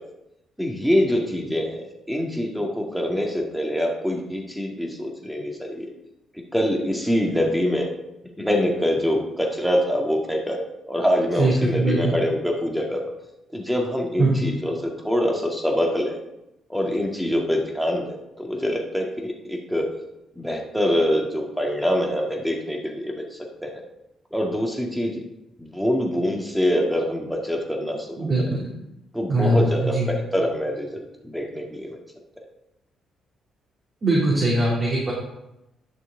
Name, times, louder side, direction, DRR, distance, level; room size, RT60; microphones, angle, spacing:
voice 1, 0.6-5.9 6.5-7.9 8.4-13.0 13.5-16.2 16.7-19.9 20.4-23.8 24.3-25.2 25.6-28.3 29.1-32.0, equal, ahead, 0 dB, 1.9 m, -25 dB
voice 2, 11.4-12.1 14.2-14.4 28.2-28.7 29.3-30.1 34.0-35.1, right 2 dB, 40° right, -5 dB, 2.7 m, -21 dB
11.0 x 6.2 x 3.8 m, 0.89 s
cardioid pair, 90°, 0 cm